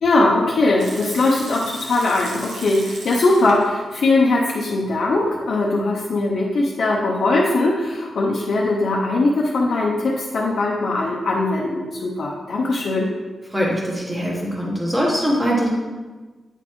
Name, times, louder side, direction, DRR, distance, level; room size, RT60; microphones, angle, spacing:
voice 1, 0.0-13.1, left 2 dB, 55° left, -3 dB, 0.6 m, -20 dB
Water tap faucet / Sink (filling or washing) / Liquid, 0.8-3.8 4.1-4.2 4.8-5.5, right 2 dB, 65° right, 1.0 m, -38 dB
voice 2, 13.5-15.7, equal, 5° right, -4 dB, 1.2 m, -22 dB
8.8 x 4.0 x 3.0 m, 1.3 s
wide cardioid pair, 155°, 0 cm